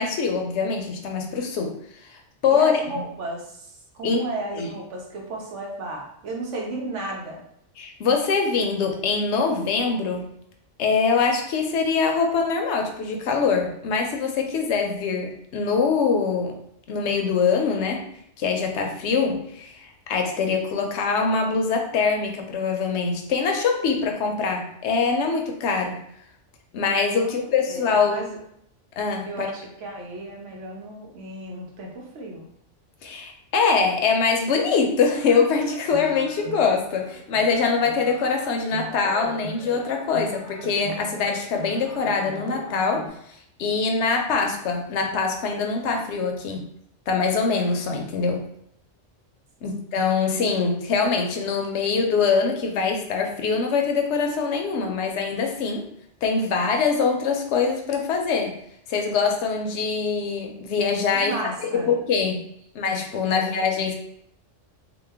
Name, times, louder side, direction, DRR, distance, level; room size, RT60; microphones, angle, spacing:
voice 1, 0.0-1.8 2.0-2.8 4.0-4.2 4.6-4.7 7.8-10.3 10.8-16.6 16.9-18.1 18.4-26.0 26.7-28.2 29.0-29.5 33.0-46.7 47.1-48.5 49.6-55.8 56.2-58.6 58.9-61.3 61.6-62.5 62.7-63.9, left 5 dB, 70° left, 3 dB, 0.8 m, -23 dB
voice 2, 2.5-3.7 3.9-7.4 27.2-27.4 27.7-28.4 29.3-32.5 49.6-49.8 61.2-61.9 63.3-63.4, right 2 dB, 80° right, 0 dB, 1.1 m, -34 dB
sound 1, 35.1-43.1, right 2 dB, 45° right, 0.9 m, -40 dB
3.0 x 2.1 x 3.3 m, 0.71 s
omnidirectional pair, 1.3 m